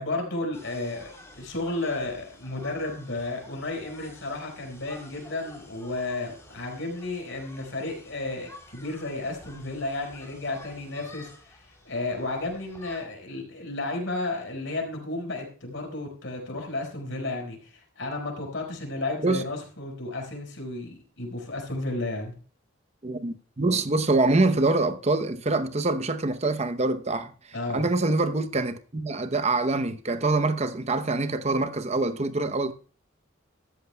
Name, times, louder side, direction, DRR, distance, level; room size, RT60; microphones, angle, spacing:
voice 1, 0.0-22.4 27.5-27.9, left 2 dB, 60° left, 5.0 m, -33 dB
sound 1, 0.5-13.0, left 2 dB, 15° left, 3.3 m, -50 dB
voice 2, 23.0-27.3 27.7-32.7, right 2 dB, 30° right, 0.8 m, -25 dB
14.0 x 13.5 x 2.3 m
head